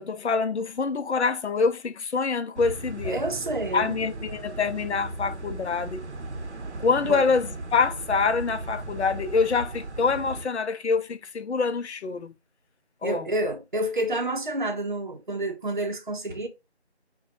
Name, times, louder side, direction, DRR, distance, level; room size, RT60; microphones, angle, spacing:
voice 1, 0.0-3.2 3.7-6.0 6.8-12.3 13.0-13.3, left 4 dB, 80° left, 0.5 m, -25 dB
sound 1, 2.6-10.5, right 2 dB, 80° right, 0.8 m, -37 dB
voice 2, 3.0-4.0 7.1-7.2 13.0-16.5, right 1 dB, 45° right, 0.6 m, -29 dB
5.4 x 2.2 x 2.5 m
figure-of-eight pair, 175°, 34 cm